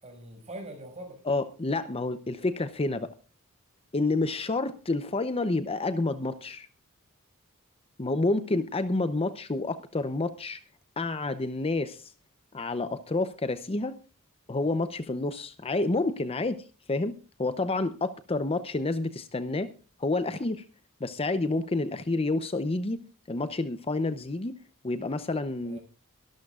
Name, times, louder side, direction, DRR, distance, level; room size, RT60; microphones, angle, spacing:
voice 1, 0.0-1.2 25.6-25.8, right 1 dB, 30° right, 4 dB, 6.0 m, -42 dB
voice 2, 1.2-3.1 3.9-6.7 8.0-10.6 11.0-12.1 12.5-14.0 14.5-19.7 20.0-20.6 21.0-23.0 23.3-24.6 24.8-25.8, left 2 dB, 25° left, 12 dB, 0.7 m, -29 dB
23.0 x 13.0 x 2.4 m, 0.32 s
head